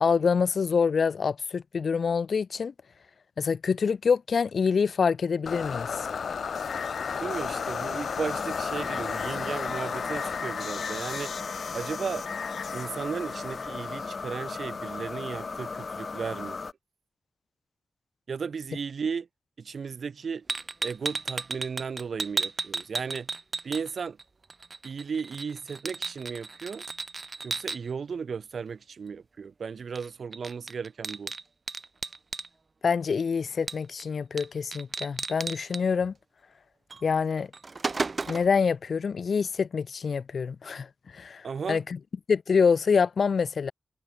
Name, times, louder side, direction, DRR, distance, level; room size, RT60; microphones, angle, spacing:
voice 1, 0.0-2.7 3.4-6.1 32.8-36.1 37.0-37.5 38.3-40.9 41.1-42.0 42.3-43.7, left 5 dB, 70° left, 0.5 m, -26 dB
sound 1, 5.5-14.5, left 6 dB, 90° left, 2.3 m, -34 dB
voice 2, 7.2-11.4 11.7-12.3 12.7-16.6 18.3-19.3 19.6-20.5 20.8-23.3 23.6-24.2 24.8-26.8 27.4-31.3 41.4-41.8, right 6 dB, 75° right, 5.8 m, -35 dB
sound 2, 8.2-16.7, left 4 dB, 45° left, 2.6 m, -36 dB
sound 3, 20.5-24.2 24.5-27.8 29.9-30.1 30.3-32.5 33.7-34.0 34.4-34.5 34.7-35.8 36.9-37.0 37.4-38.6, right 3 dB, 40° right, 2.0 m, -34 dB
wide cardioid pair, 165°, 0 cm